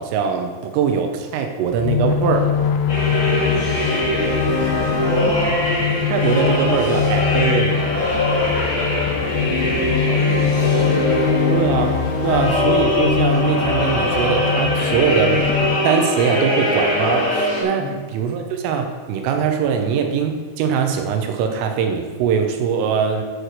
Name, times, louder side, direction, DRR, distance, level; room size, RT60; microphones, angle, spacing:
voice 1, 0.0-2.5 6.1-7.8 11.5-11.9 12.2-17.8 18.1-23.2, right 6 dB, 85° right, 4 dB, 3.4 m, -21 dB
sound 1, 1.7-15.8, left 7 dB, 90° left, 2.6 m, -23 dB
voice 2, 2.9-3.4 3.7-5.6 8.0-11.8 12.3-12.4 17.8-18.0, left 2 dB, 60° left, -4 dB, 3.1 m, -35 dB
sound 2, 2.9-17.6, left 1 dB, 40° left, 3.3 m, -21 dB
9.2 x 8.0 x 4.7 m, 1.5 s
omnidirectional pair, 6.0 m